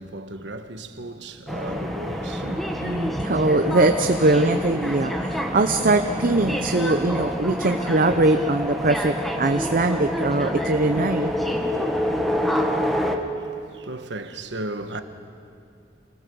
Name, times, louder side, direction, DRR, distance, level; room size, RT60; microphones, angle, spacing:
voice 1, 0.0-2.8 13.3-15.0, right 1 dB, 75° right, 1.3 m, -35 dB
sound 1, 1.5-13.2, equal, ahead, 1.3 m, -27 dB
voice 2, 2.8-11.3, right 2 dB, 50° right, 0.8 m, -21 dB
27.5 x 18.5 x 7.1 m
head